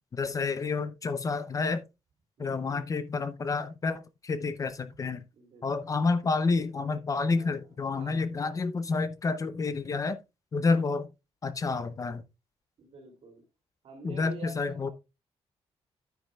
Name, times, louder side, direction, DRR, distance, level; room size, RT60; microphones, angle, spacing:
voice 1, 0.1-1.8 2.4-5.2 5.6-10.2 10.5-11.1 11.4-12.2 14.0-14.9, left 4 dB, 30° left, 0.6 m, -29 dB
voice 2, 2.4-2.9 5.3-6.0 7.3-8.6 12.8-13.4 13.8-14.9, right 4 dB, 60° right, 2.8 m, -49 dB
9.7 x 9.3 x 2.3 m
wide cardioid pair, 165°, 11 cm